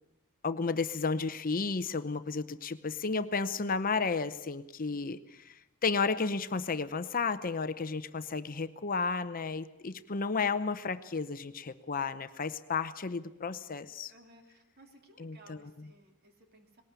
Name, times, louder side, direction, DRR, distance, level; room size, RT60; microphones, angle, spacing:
voice 1, 0.4-14.1 15.2-15.9, left 4 dB, 40° left, 11 dB, 0.8 m, -33 dB
voice 2, 14.1-16.8, right 1 dB, 45° right, 4 dB, 3.0 m, -59 dB
19.5 x 18.5 x 8.1 m, 0.96 s
head